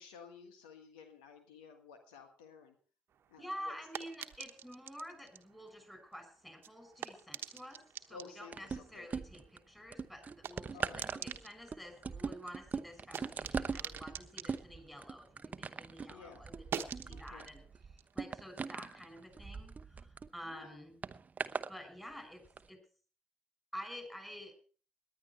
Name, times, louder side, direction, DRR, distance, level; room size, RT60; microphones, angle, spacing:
voice 1, 0.0-2.7 3.3-3.7 8.1-9.1 10.7-11.1 16.1-16.4 17.0-17.5 20.4-20.8, left 6 dB, 80° left, 7 dB, 1.5 m, -54 dB
sound 1, 3.1-15.9 16.2-19.4, right 8 dB, 55° right, 1.1 m, -48 dB
voice 2, 3.4-17.6 18.1-21.0 21.7-22.8 23.7-24.5, equal, 5° left, 7 dB, 5.9 m, -49 dB
sound 2, 8.5-9.6 9.9-20.3 21.0-21.7 22.4-22.6, right 5 dB, 35° right, 0.8 m, -41 dB
19.0 x 10.5 x 4.4 m, 0.40 s
hypercardioid pair, 45°, 5 cm